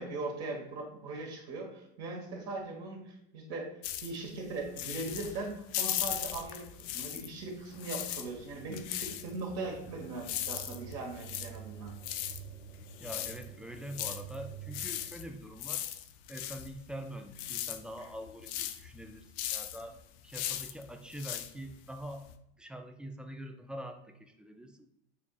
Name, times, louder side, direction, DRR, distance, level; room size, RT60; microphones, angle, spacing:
voice 1, 0.0-3.7 4.0-11.9, right 3 dB, 55° right, -1 dB, 1.4 m, -40 dB
sound 1, 3.8-7.4 7.7-22.3, left 12 dB, 65° left, 0.5 m, -38 dB
sound 2, 6.2-15.1, right 9 dB, 80° right, 1.6 m, -50 dB
voice 2, 13.0-15.8 16.3-20.0 20.2-22.3 22.6-24.9, equal, 5° right, 6 dB, 0.3 m, -44 dB
6.9 x 2.7 x 2.4 m, 0.79 s
hypercardioid pair, 90°, 31 cm